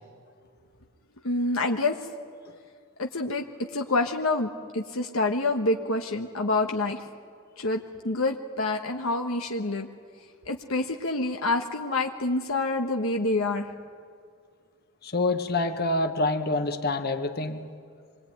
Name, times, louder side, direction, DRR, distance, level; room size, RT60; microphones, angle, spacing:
voice 1, 1.2-2.0 3.0-7.0 7.6-9.9 10.5-13.7, left 2 dB, 70° left, 3 dB, 1.3 m, -27 dB
voice 2, 15.0-17.6, left 2 dB, 50° left, 6 dB, 1.7 m, -27 dB
26.0 x 22.0 x 9.4 m, 2.2 s
head